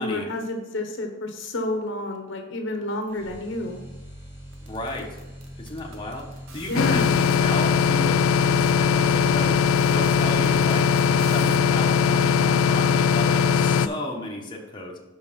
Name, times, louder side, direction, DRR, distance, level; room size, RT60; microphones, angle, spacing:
voice 1, 0.0-3.8 6.7-7.2, left 1 dB, 65° left, 4 dB, 1.1 m, -29 dB
sound 1, 3.1-11.1, equal, 10° right, 1.7 m, -43 dB
sound 2, 4.5-7.4 8.1-8.2 8.4-11.9, right 4 dB, 65° right, 1.1 m, -46 dB
voice 2, 4.7-5.1 5.6-6.3 6.5-9.6 9.9-14.9, left 1 dB, 25° left, -2 dB, 1.2 m, -33 dB
sound 3, 6.8-13.9, left 6 dB, 90° left, 0.3 m, -20 dB
6.2 x 5.3 x 5.4 m, 1.1 s
head